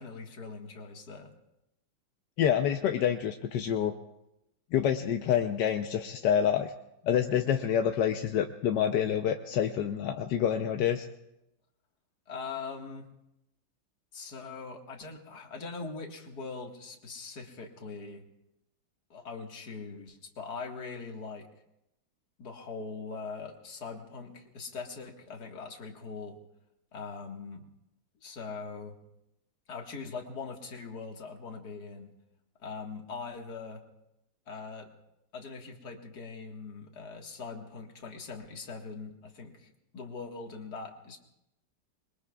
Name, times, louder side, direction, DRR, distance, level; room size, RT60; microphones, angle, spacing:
voice 1, 0.0-1.3 12.3-13.1 14.1-18.2 19.1-21.5 22.4-26.4 26.9-27.7 28.2-29.0 29.7-32.1 32.6-33.8 34.5-34.9 35.3-41.2, left 4 dB, 50° left, 2 dB, 2.1 m, -41 dB
voice 2, 2.4-3.9 4.7-6.7 7.0-11.0, left 9 dB, 65° left, 5 dB, 1.2 m, -27 dB
27.0 x 22.0 x 2.4 m, 0.87 s
omnidirectional pair, 2.3 m